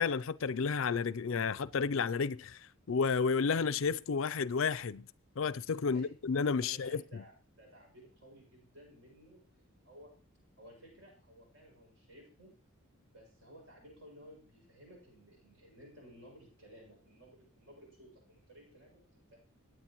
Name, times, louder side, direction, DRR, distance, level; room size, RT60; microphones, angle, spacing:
voice 1, 0.0-2.6 2.9-5.1 5.4-7.0, left 5 dB, 65° left, 0.5 m, -31 dB
voice 2, 6.6-10.1 10.6-12.6 13.1-19.2, equal, 65° right, 6.8 m, -56 dB
22.5 x 9.3 x 3.1 m
head